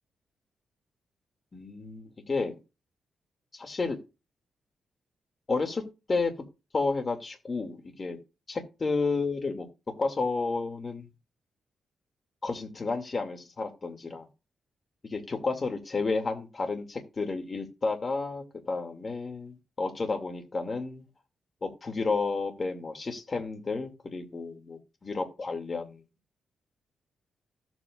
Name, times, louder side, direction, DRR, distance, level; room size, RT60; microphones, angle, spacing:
voice 1, 1.5-2.5 3.5-4.0 5.5-5.8 6.1-6.3 6.7-8.2 8.5-9.7 10.0-11.1 12.4-14.3 15.0-21.1 21.6-26.0, left 3 dB, 30° left, 5 dB, 2.5 m, -31 dB
15.0 x 8.1 x 2.5 m, 0.27 s
cardioid pair, 115°, 0 cm